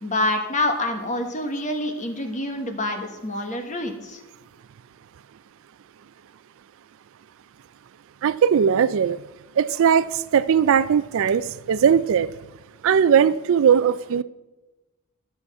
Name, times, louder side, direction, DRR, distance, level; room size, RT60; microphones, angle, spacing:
voice 1, 0.0-4.2, left 1 dB, 35° left, 1.3 m, -27 dB
voice 2, 8.2-9.2 9.6-10.1 10.3-11.4 11.7-12.3 12.8-14.2, right 7 dB, 65° right, 0.4 m, -18 dB
12.0 x 7.1 x 5.3 m
head